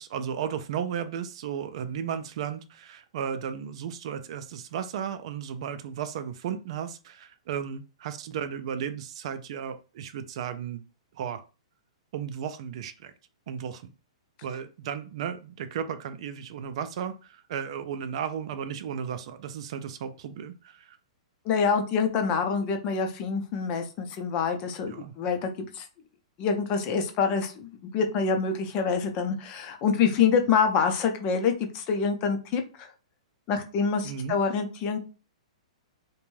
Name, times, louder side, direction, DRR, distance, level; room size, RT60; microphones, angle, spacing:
voice 1, 0.0-10.8 11.1-11.4 12.1-13.1 13.5-13.9 14.4-21.0 24.8-25.1 34.0-34.4, right 8 dB, 60° right, 10 dB, 0.4 m, -34 dB
voice 2, 21.4-25.9 26.4-32.9 33.5-35.0, left 5 dB, 35° left, 5 dB, 0.6 m, -26 dB
2.5 x 2.2 x 3.1 m, 0.33 s
hypercardioid pair, 135°, 4 cm